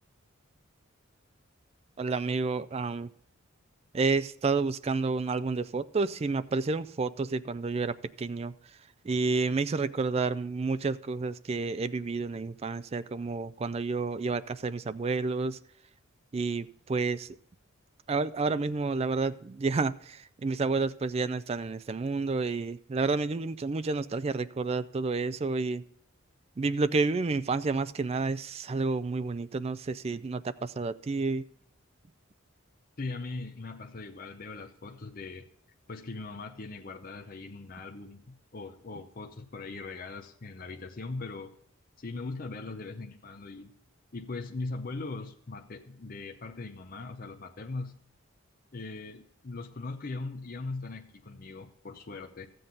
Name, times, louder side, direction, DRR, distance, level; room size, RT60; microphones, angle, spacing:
voice 1, 2.0-3.1 3.9-8.5 9.0-15.6 16.3-17.3 18.1-25.8 26.6-31.4, right 4 dB, 30° right, 0.3 m, -30 dB
voice 2, 33.0-35.5 35.9-41.5 42.0-43.7 44.1-48.0 48.7-52.5, left 3 dB, 40° left, 0.7 m, -40 dB
13.0 x 7.8 x 3.9 m
head